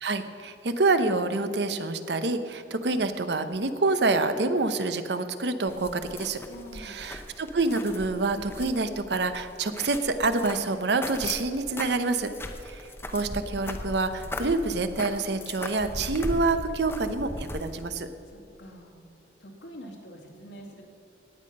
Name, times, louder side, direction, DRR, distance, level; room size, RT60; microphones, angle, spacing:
voice 1, 0.0-6.4 6.8-12.3 12.6-18.1, right 3 dB, 70° right, 10 dB, 0.8 m, -27 dB
sound 1, 5.7-17.8, left 1 dB, 15° left, 0.7 m, -38 dB
voice 2, 6.5-7.1 18.3-19.0 19.4-20.8, right 1 dB, 80° left, 0 dB, 2.3 m, -45 dB
18.0 x 8.6 x 5.4 m, 2.6 s
head